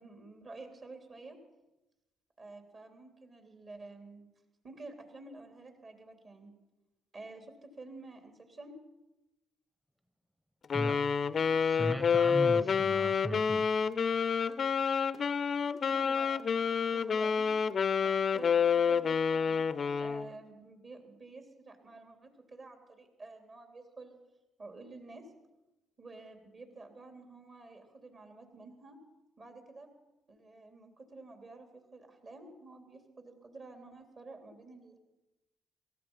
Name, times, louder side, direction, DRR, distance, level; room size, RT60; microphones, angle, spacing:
voice 1, 0.0-1.4 2.4-4.2 4.6-6.5 7.1-8.8 15.9-17.5 18.0-24.2 24.6-25.3 26.0-29.0 29.4-30.0 30.3-35.0, right 3 dB, 45° right, 5 dB, 3.2 m, -50 dB
Wind instrument woodwind instrument, 10.7-20.3, left 6 dB, 45° left, 0.5 m, -29 dB
voice 2, 10.7-11.1 11.6-13.8, equal, 5° right, 7 dB, 1.0 m, -37 dB
18.0 x 14.0 x 5.5 m, 1.0 s
supercardioid pair, 75°, 0 cm